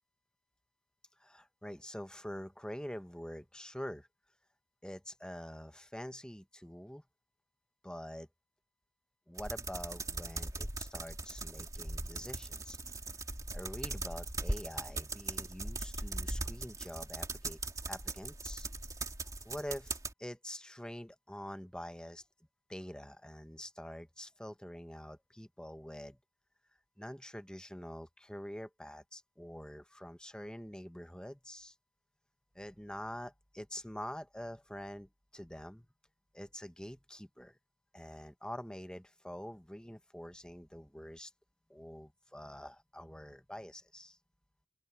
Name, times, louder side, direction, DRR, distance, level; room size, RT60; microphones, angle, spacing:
voice 1, 1.2-4.1 4.8-7.0 7.8-8.3 9.3-12.8 13.5-17.6 17.9-18.7 19.4-22.2 22.7-26.2 27.0-31.7 32.5-35.9 36.3-37.6 37.9-41.3 41.7-44.2, equal, 5° left, 1.0 m, -46 dB
sound 1, 9.4-20.1, right 2 dB, 20° right, 2.7 m, -40 dB
open air
head